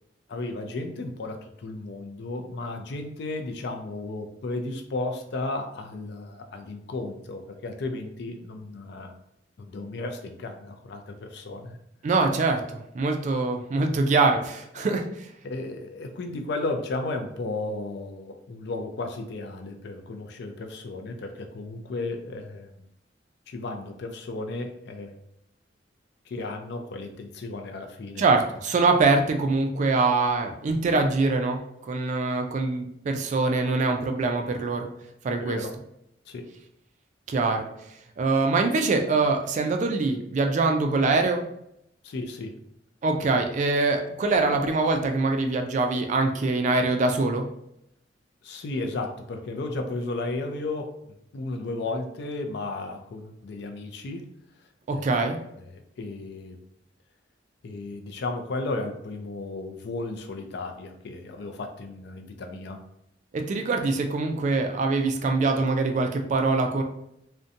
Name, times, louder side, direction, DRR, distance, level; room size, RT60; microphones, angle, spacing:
voice 1, 0.3-9.2 9.6-11.8 14.8-14.9 15.4-22.9 23.5-25.2 26.3-28.2 35.4-35.7 36.3-36.5 42.0-42.6 48.4-54.2 54.9-55.1 55.5-56.6 57.6-62.8, left 2 dB, 65° left, 5 dB, 0.4 m, -34 dB
voice 2, 12.0-15.3 28.2-31.6 31.9-34.9 35.2-35.6 37.3-37.7 38.2-41.4 43.0-47.4 54.9-55.4 63.3-66.8, right 3 dB, 40° right, 4 dB, 0.3 m, -24 dB
2.5 x 2.1 x 2.6 m, 0.78 s
head